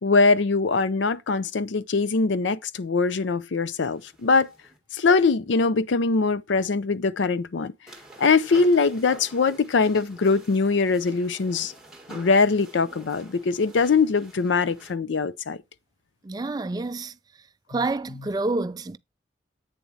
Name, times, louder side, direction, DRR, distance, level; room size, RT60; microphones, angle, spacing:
voice 1, 0.0-4.5 4.9-7.7 8.2-11.7 12.1-15.6, left 4 dB, 85° left, 0.5 m, -22 dB
sound 1, 3.9-4.8 7.9-14.9, right 1 dB, 5° right, 1.7 m, -48 dB
voice 2, 16.2-17.1 17.7-19.0, right 3 dB, 20° right, 0.3 m, -28 dB
8.4 x 7.0 x 2.7 m
head